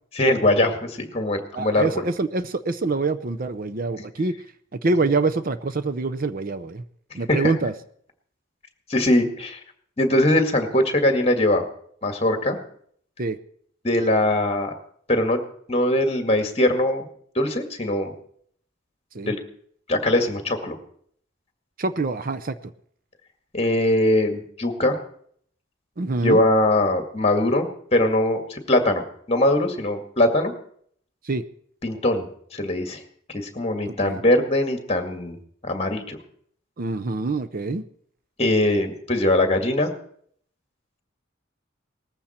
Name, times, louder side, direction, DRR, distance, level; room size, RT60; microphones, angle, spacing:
voice 1, 0.1-2.0 7.3-7.5 8.9-9.6 10.0-11.7 12.0-12.6 13.8-14.7 15.1-15.4 15.7-17.1 17.4-18.1 19.3-19.4 19.9-20.8 23.5-25.0 26.2-29.0 29.3-30.5 31.8-32.3 32.5-33.0 33.3-35.4 35.6-36.2 38.4-39.9, left 1 dB, 30° left, 5 dB, 2.0 m, -21 dB
voice 2, 1.5-4.3 4.7-6.8 7.1-7.7 13.2-13.4 19.1-19.3 21.8-22.6 26.0-26.4 31.2-31.4 33.9-34.2 36.8-37.8, right 3 dB, 45° right, 10 dB, 0.6 m, -25 dB
19.0 x 14.5 x 4.4 m, 0.63 s
head